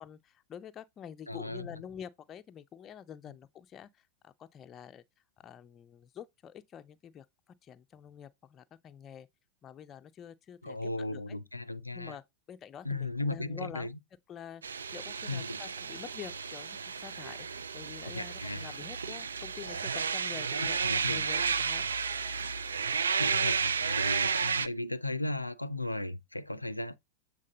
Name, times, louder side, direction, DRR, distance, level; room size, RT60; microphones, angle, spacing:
voice 1, 0.0-5.0 5.4-9.3 9.6-11.4 11.9-13.9 14.3-17.5 17.7-21.9, left 8 dB, 25° left, 0.5 m, -47 dB
voice 2, 1.3-1.8 10.6-12.2 12.8-14.0 15.3-15.6 18.0-18.7 20.8-21.2 23.2-27.0, left 2 dB, 85° left, 0.5 m, -36 dB
sound 1, 14.6-24.7, right 6 dB, 70° right, 0.4 m, -32 dB
7.5 x 3.8 x 3.7 m
figure-of-eight pair, 90°, 0 cm